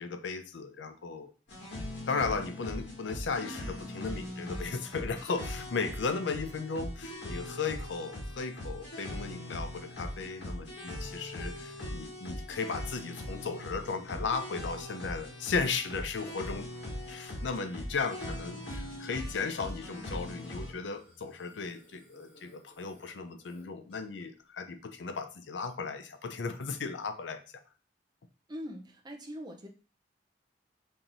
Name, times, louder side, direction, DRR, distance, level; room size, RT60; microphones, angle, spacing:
voice 1, 0.0-1.3 2.1-16.7 17.1-27.4, left 4 dB, 90° left, 9 dB, 0.5 m, -36 dB
sound 1, 1.5-20.7, left 1 dB, 75° left, 2.0 m, -40 dB
Burping eructation, 19.4-24.2, left 1 dB, 30° left, 1.4 m, -58 dB
voice 2, 28.5-29.7, equal, 25° right, 3 dB, 0.6 m, -42 dB
5.4 x 3.0 x 2.6 m, 0.35 s
head